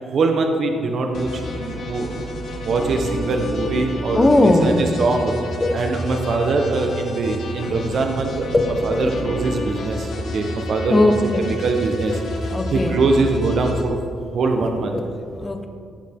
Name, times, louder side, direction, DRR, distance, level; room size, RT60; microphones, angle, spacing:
voice 1, 0.1-2.2 2.6-5.3 5.7-8.5 8.8-14.0 14.3-15.0, right 3 dB, 60° right, 3 dB, 1.2 m, -22 dB
sound 1, 1.1-13.8, left 1 dB, 75° left, 2.4 m, -30 dB
voice 2, 4.1-4.8 5.6-5.8 8.5-9.1 10.9-11.5 12.5-13.0 14.9-15.7, left 2 dB, 25° left, 5 dB, 1.3 m, -19 dB
18.5 x 7.4 x 3.8 m, 2.3 s
cardioid pair, 90°, 0 cm